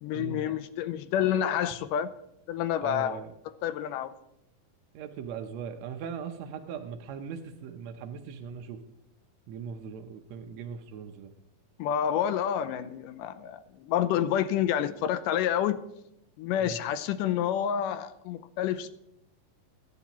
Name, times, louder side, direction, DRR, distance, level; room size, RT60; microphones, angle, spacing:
voice 1, 0.0-2.1 2.5-3.2 3.6-4.1 11.8-15.8 16.4-18.9, left 10 dB, 80° left, 2.2 m, -28 dB
voice 2, 2.8-3.3 4.9-8.8 9.5-11.3 16.6-16.8, right 7 dB, 70° right, 1.7 m, -39 dB
21.5 x 10.0 x 3.0 m
omnidirectional pair, 3.9 m